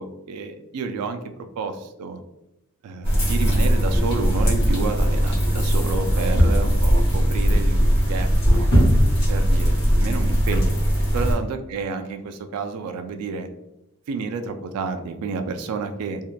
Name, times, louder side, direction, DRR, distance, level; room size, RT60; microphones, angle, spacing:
voice 1, 0.0-2.2 2.8-8.7 9.3-10.8 11.1-13.5 14.1-16.2, right 4 dB, 85° right, 12 dB, 0.3 m, -30 dB
sound 1, 3.0-11.3, equal, 50° left, 1.0 m, -19 dB
2.7 x 2.1 x 2.2 m, 0.90 s
head